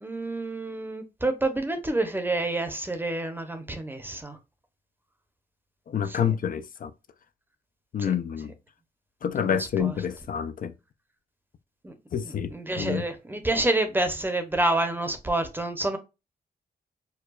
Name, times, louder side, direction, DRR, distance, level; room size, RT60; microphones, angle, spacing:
voice 1, 0.0-4.4 6.1-6.3 8.0-8.1 9.3-9.9 11.8-11.9 12.2-16.0, right 2 dB, 10° right, 0.7 m, -28 dB
voice 2, 5.9-6.9 7.9-8.5 9.2-10.7 12.1-13.0, left 8 dB, 55° left, 0.4 m, -28 dB
4.6 x 2.2 x 2.3 m
cardioid pair, 100°, 17 cm